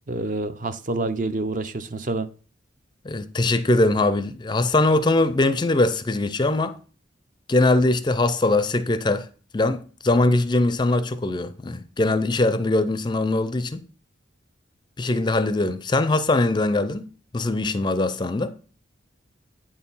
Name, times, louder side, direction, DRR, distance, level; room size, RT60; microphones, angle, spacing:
voice 1, 0.1-2.3, right 2 dB, 40° right, 0.5 m, -27 dB
voice 2, 3.0-6.8 7.5-9.3 9.5-13.8 15.0-18.6, left 2 dB, 25° left, 0.4 m, -22 dB
8.7 x 4.4 x 5.4 m
head